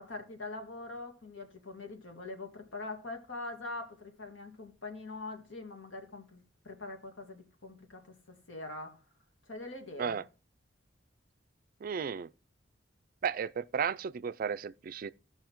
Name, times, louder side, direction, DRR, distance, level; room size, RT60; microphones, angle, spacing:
voice 1, 0.0-8.1 8.5-9.0 9.5-10.2, left 2 dB, 85° left, 1.9 m, -43 dB
voice 2, 11.8-12.3 13.2-15.1, right 6 dB, 50° right, 0.3 m, -34 dB
16.5 x 5.6 x 3.0 m
head